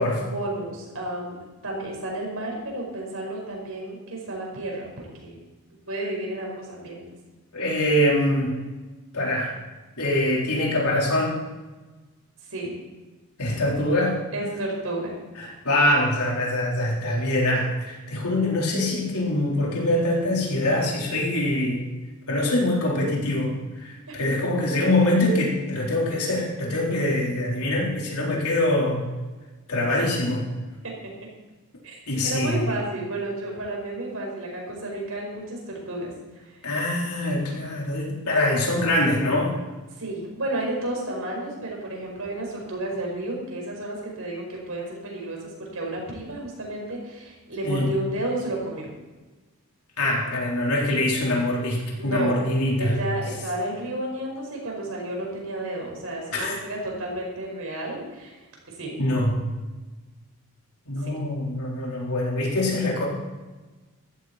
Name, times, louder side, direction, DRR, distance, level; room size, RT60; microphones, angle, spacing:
voice 1, 0.0-1.4 1.6-5.4 5.9-7.0 12.5-12.7 14.3-15.1 24.1-24.2 30.8-30.9 31.8-32.0 32.2-36.6 39.9-48.9 52.0-52.4 52.8-58.4 58.7-58.9 61.0-61.1, right 1 dB, 70° right, -1 dB, 5.3 m, -32 dB
voice 2, 7.5-8.6 9.1-9.5 10.0-11.4 13.4-14.2 15.4-21.9 22.3-29.0 29.7-30.5 32.1-32.7 36.6-39.6 47.6-47.9 50.0-53.0 56.3-56.6 59.0-59.4 60.9-63.1, left 1 dB, 85° left, -3 dB, 4.2 m, -24 dB
14.5 x 13.0 x 4.4 m, 1.2 s
head